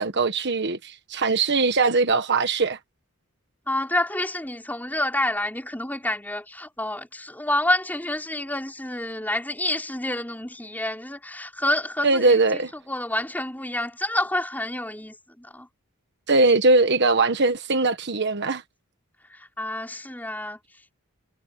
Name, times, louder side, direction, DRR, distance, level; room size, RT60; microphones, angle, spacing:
voice 1, 0.0-2.8 12.0-12.7 16.3-18.6, right 3 dB, 50° right, 1.4 m, -21 dB
voice 2, 3.7-15.7 19.3-20.6, left 1 dB, 10° left, 5.2 m, -28 dB
head